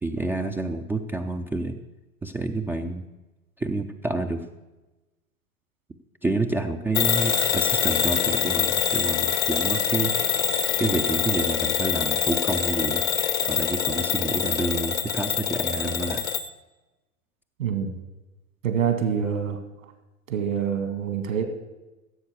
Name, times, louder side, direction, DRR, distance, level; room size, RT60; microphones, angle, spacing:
voice 1, 0.0-1.8 2.2-3.0 3.6-4.5 6.2-10.2 10.8-13.0 13.5-16.2, right 2 dB, 5° right, 4 dB, 0.4 m, -28 dB
Bell / Alarm, 6.9-16.5, left 8 dB, 70° left, 1.0 m, -25 dB
voice 2, 17.6-18.0 18.6-19.6 20.3-21.4, right 7 dB, 65° right, 7 dB, 2.1 m, -26 dB
15.5 x 7.9 x 6.7 m, 1.1 s
figure-of-eight pair, 90°, 42 cm